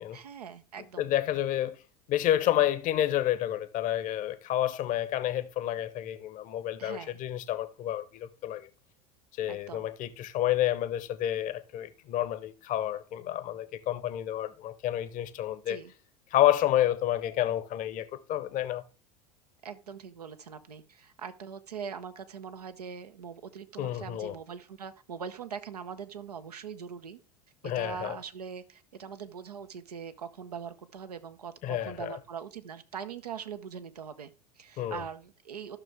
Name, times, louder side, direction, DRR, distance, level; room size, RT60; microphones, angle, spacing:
voice 1, 0.1-1.1 6.8-7.2 9.5-9.9 15.7-15.9 19.6-27.2 27.6-35.8, right 7 dB, 85° right, 0.8 m, -42 dB
voice 2, 1.0-1.8 2.1-8.7 9.4-15.8 16.3-18.8 23.8-24.3 27.6-28.2 31.6-32.1 34.8-35.0, left 12 dB, 45° left, 0.8 m, -29 dB
13.0 x 6.1 x 3.5 m
figure-of-eight pair, 80°, 20 cm